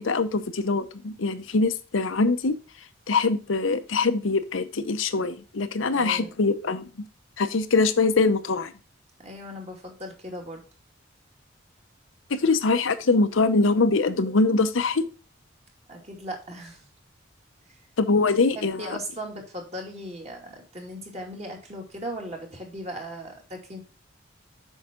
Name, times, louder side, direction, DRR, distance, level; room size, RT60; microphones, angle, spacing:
voice 1, 0.0-2.6 3.1-6.9 7.4-8.7 12.3-15.1 18.0-19.0, left 3 dB, 80° left, 10 dB, 0.7 m, -23 dB
voice 2, 5.9-6.3 9.2-10.6 15.9-16.8 18.5-23.8, equal, 35° right, 1 dB, 2.4 m, -38 dB
8.0 x 5.6 x 3.7 m, 0.35 s
head